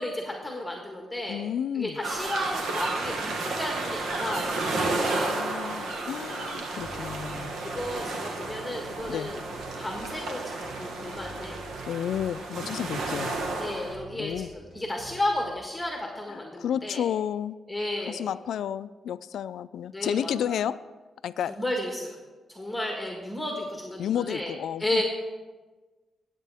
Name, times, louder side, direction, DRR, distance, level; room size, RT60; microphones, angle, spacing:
voice 1, 0.0-1.4 1.7-5.4 7.6-9.4 9.8-11.6 13.6-17.0 17.7-18.2 19.9-20.6 21.5-22.2 22.5-24.5 24.8-25.0, left 1 dB, 5° left, 1 dB, 1.5 m, -33 dB
voice 2, 1.3-2.0 5.2-7.5 9.1-9.3 11.9-13.4 14.1-14.5 16.3-17.6 18.1-20.7 21.2-21.6 24.0-25.0, left 9 dB, 85° left, 14 dB, 0.3 m, -31 dB
sound 1, 2.0-14.0, right 2 dB, 90° right, 1.4 m, -32 dB
sound 2, 6.8-15.5, right 3 dB, 40° right, 1.7 m, -48 dB
17.0 x 8.2 x 3.5 m, 1.3 s
cardioid pair, 115°, 0 cm